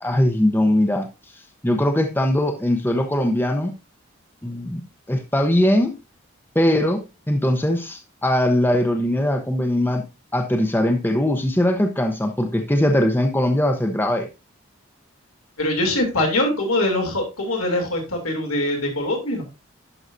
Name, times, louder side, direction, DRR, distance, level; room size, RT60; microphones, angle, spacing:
voice 1, 0.0-1.1 1.6-3.7 4.4-4.8 5.1-5.9 6.5-10.0 10.3-14.3, left 1 dB, 10° left, 5 dB, 0.7 m, -20 dB
voice 2, 15.6-19.4, left 1 dB, 85° left, 1 dB, 3.0 m, -23 dB
11.0 x 5.6 x 2.6 m, 0.27 s
head